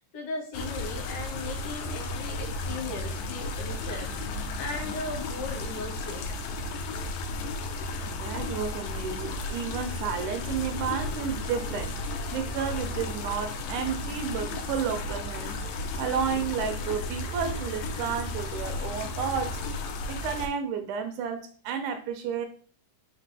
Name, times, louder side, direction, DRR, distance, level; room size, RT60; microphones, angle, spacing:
voice 1, 0.1-6.3, left 2 dB, 60° left, 1 dB, 2.0 m, -38 dB
sound 1, 0.5-20.5, left 2 dB, 85° left, 1.4 m, -34 dB
voice 2, 8.1-19.6 20.1-22.5, right 7 dB, 80° right, 7 dB, 1.9 m, -32 dB
5.0 x 2.6 x 3.3 m, 0.43 s
omnidirectional pair, 3.6 m